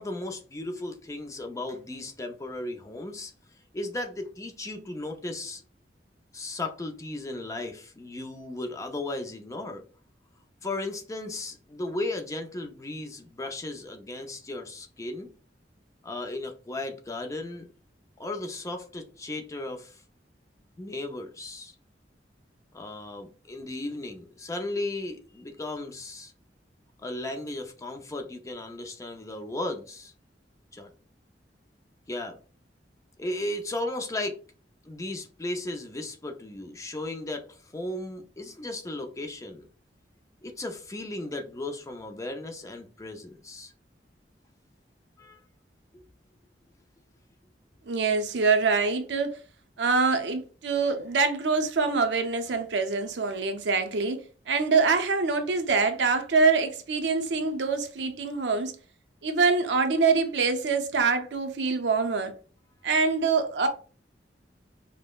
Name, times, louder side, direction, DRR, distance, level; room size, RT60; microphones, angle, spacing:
voice 1, 0.0-3.3 3.7-5.6 6.3-9.8 10.6-15.3 16.0-17.7 18.2-20.0 20.8-21.7 22.7-26.3 27.0-30.1 30.7-30.9 32.1-32.4 33.2-34.4 34.9-39.7 40.4-43.7 45.2-45.4 45.9-46.0, left 2 dB, 20° left, 0.4 m, -35 dB
voice 2, 47.9-49.4 49.8-54.2 54.5-58.7 59.2-62.3 62.8-63.7, right 4 dB, 80° right, 0.5 m, -25 dB
5.1 x 2.0 x 2.3 m
head